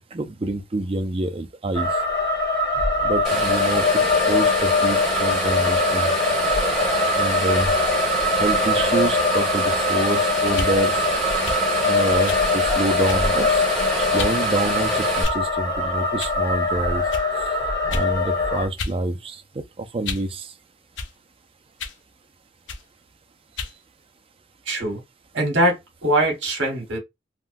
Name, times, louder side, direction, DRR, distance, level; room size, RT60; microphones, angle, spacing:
voice 1, 0.1-1.9 3.0-3.8 4.3-6.1 7.2-7.7 8.4-10.9 11.9-12.3 12.8-13.5 14.0-17.0 17.9-19.3 19.9-20.4, right 2 dB, 30° right, 0.4 m, -26 dB
sound 1, 1.7-18.7, left 3 dB, 20° left, 1.2 m, -22 dB
sound 2, 3.2-15.2, right 2 dB, ahead, 1.3 m, -27 dB
sound 3, 10.5-10.7 11.4-11.6 12.3-12.5 13.1-13.4 14.2-14.4 15.2-15.6 16.2-16.4 17.1-17.3 17.9-18.1 18.8-19.0 19.3-20.3 21.0-21.1 21.8-22.0 22.7-22.9 23.6-23.8, left 4 dB, 75° left, 0.6 m, -32 dB
voice 2, 24.7-25.0 25.3-27.0, right 1 dB, 75° right, 1.3 m, -22 dB
3.6 x 2.2 x 2.6 m
head